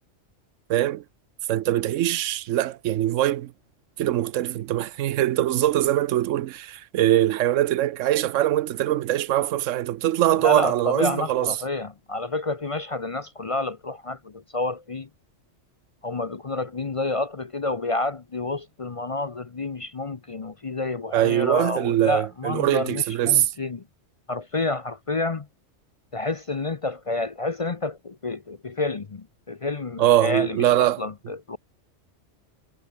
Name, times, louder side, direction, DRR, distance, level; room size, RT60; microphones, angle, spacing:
voice 1, 0.7-1.0 1.5-3.5 4.0-11.5 21.1-23.5 30.0-31.0, right 13 dB, 85° right, 1.0 m, -22 dB
voice 2, 10.4-15.1 16.0-23.8 24.3-25.5 26.1-31.6, left 3 dB, 35° left, 0.6 m, -29 dB
omnidirectional pair, 1.3 m